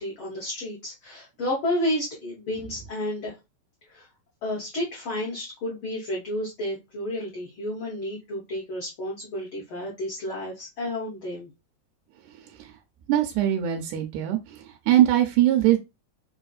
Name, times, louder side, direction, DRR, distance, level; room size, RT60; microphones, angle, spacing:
voice 1, 0.0-3.3 3.9-4.1 4.4-11.5, left 1 dB, 85° left, -3 dB, 1.1 m, -31 dB
voice 2, 13.1-14.4 14.9-15.8, right 12 dB, 80° right, 3 dB, 2.0 m, -21 dB
4.8 x 2.6 x 2.3 m, 0.23 s
omnidirectional pair, 3.7 m